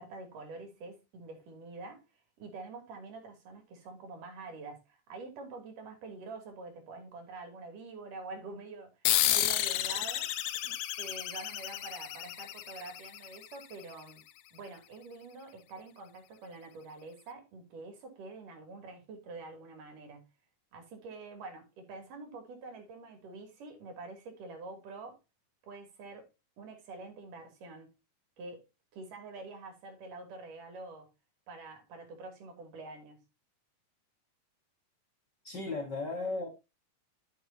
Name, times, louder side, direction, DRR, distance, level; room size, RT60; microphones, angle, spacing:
voice 1, 0.0-2.0 2.4-14.2 14.5-20.3 20.7-25.2 25.6-26.3 26.6-27.9 28.4-28.6 28.9-31.1 31.5-33.2, right 3 dB, 75° right, 4.1 m, -46 dB
sound 1, 9.0-14.0, left 13 dB, 75° left, 2.0 m, -32 dB
voice 2, 35.4-36.5, left 3 dB, 45° left, 1.7 m, -35 dB
13.0 x 6.5 x 2.7 m
omnidirectional pair, 3.7 m